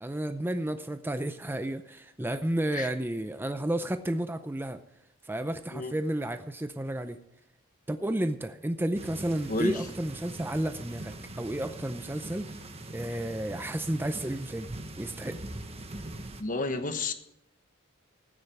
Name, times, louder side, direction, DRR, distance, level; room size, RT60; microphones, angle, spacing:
voice 1, 0.0-4.8 5.2-7.2 7.9-12.5 12.9-14.7 15.0-15.4, right 1 dB, 10° right, 9 dB, 0.5 m, -32 dB
sound 1, 8.9-16.4, right 2 dB, 30° right, 1.3 m, -42 dB
voice 2, 9.5-9.8 16.4-17.1, left 3 dB, 40° left, 7 dB, 1.2 m, -31 dB
14.5 x 9.7 x 4.9 m, 0.79 s
head